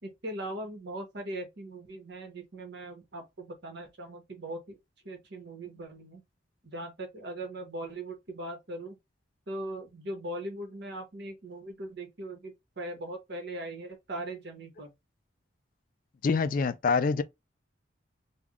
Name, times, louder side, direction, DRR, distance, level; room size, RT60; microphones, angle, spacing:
voice 1, 0.0-4.8 5.0-6.2 6.7-9.0 9.5-14.9, right 1 dB, 60° right, 1.2 m, -40 dB
voice 2, 16.2-17.2, left 4 dB, 45° left, 0.3 m, -25 dB
3.4 x 2.3 x 3.4 m
head